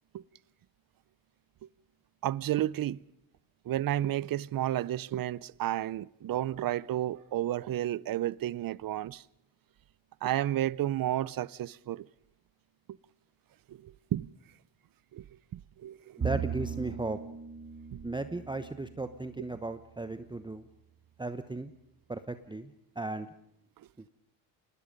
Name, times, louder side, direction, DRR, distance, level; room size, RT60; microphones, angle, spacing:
voice 1, 2.2-3.0 3.7-9.2 10.2-12.1 13.7-14.3 15.1-15.2 15.8-16.2, right 13 dB, 45° right, 0.7 m, -31 dB
voice 2, 16.2-17.2 18.0-20.6 21.2-21.7 22.1-23.3, right 2 dB, 10° right, 0.9 m, -36 dB
Bowed string instrument, 16.2-19.7, right 7 dB, 30° right, 1.3 m, -38 dB
27.0 x 20.0 x 5.3 m
cardioid pair, 105°, 46 cm